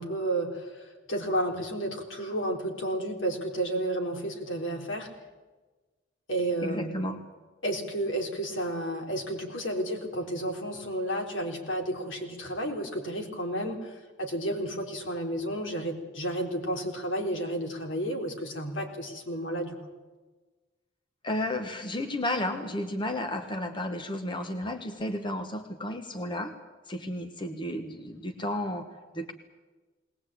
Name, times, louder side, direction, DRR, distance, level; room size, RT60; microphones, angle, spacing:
voice 1, 0.0-5.1 6.3-7.0 7.6-13.9 14.2-19.8, right 1 dB, 75° left, 2 dB, 3.8 m, -32 dB
voice 2, 6.6-7.2 21.2-26.6 26.9-28.9 29.1-29.3, left 1 dB, 25° left, 6 dB, 1.3 m, -32 dB
20.5 x 19.5 x 8.6 m, 1.3 s
head